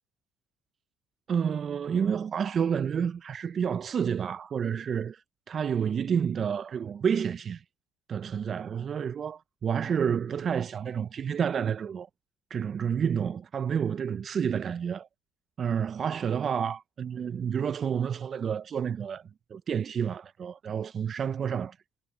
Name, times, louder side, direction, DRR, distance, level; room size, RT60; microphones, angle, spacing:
voice 1, 1.3-5.2 5.5-7.6 8.1-12.1 12.5-15.1 15.6-19.2 19.5-21.7, right 7 dB, 45° right, 0.6 m, -29 dB
supercardioid pair, 80°, 0 cm